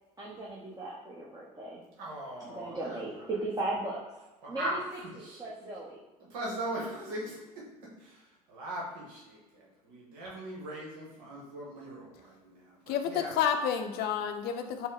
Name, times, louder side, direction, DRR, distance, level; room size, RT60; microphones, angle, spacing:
voice 1, 0.2-1.8 2.4-4.0 4.5-4.8 5.2-6.0, right 2 dB, 20° right, -5 dB, 0.8 m, -37 dB
voice 2, 2.0-3.0 4.4-5.5 6.2-7.5 8.0-8.2 8.5-13.4, right 1 dB, 70° right, -4 dB, 1.0 m, -39 dB
voice 3, 12.9-14.9, left 8 dB, 55° left, 6 dB, 0.6 m, -30 dB
4.0 x 2.1 x 3.9 m, 1.1 s
hypercardioid pair, 70°, 20 cm